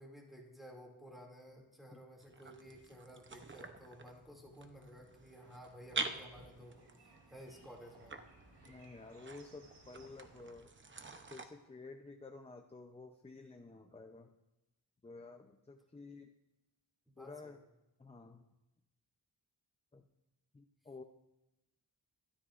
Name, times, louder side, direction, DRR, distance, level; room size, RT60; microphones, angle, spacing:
voice 1, 0.0-8.2 17.1-17.6, equal, ahead, -1 dB, 2.5 m, -54 dB
sound 1, 2.2-11.5, right 3 dB, 30° right, 0.8 m, -47 dB
sound 2, 5.4-10.5, right 1 dB, 75° right, 4.3 m, -63 dB
voice 2, 8.6-10.7 11.3-14.3 15.0-16.3 17.2-17.6 18.0-18.5 19.9-20.1 20.5-21.0, left 3 dB, 15° left, 4 dB, 0.6 m, -52 dB
23.0 x 13.0 x 2.5 m, 0.99 s
wide cardioid pair, 145°, 41 cm